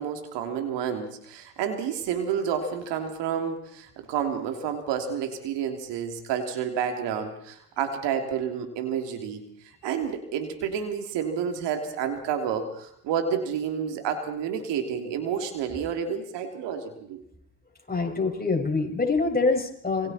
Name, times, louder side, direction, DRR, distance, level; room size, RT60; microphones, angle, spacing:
voice 1, 0.0-9.4 9.8-17.2, right 7 dB, 65° right, 5 dB, 3.2 m, -30 dB
voice 2, 17.9-20.1, left 3 dB, 20° left, 2 dB, 6.0 m, -25 dB
27.0 x 22.5 x 4.4 m, 0.70 s
hypercardioid pair, 60°, 45 cm